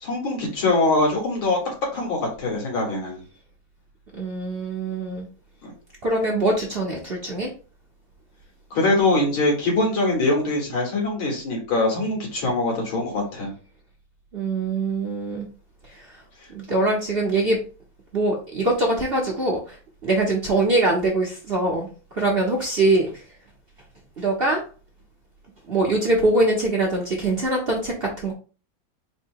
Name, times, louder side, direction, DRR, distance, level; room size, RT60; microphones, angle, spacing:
voice 1, 0.0-1.6 1.9-3.2 5.6-5.7 8.7-13.5, left 2 dB, 85° left, -1 dB, 2.7 m, -23 dB
voice 2, 4.1-5.3 6.0-7.5 14.3-15.5 16.5-17.6 18.1-19.8 20.0-21.9 22.1-23.2 24.2-24.6 25.7-28.3, right 2 dB, 50° right, -1 dB, 0.7 m, -23 dB
4.7 x 2.2 x 4.6 m, 0.35 s
omnidirectional pair, 2.2 m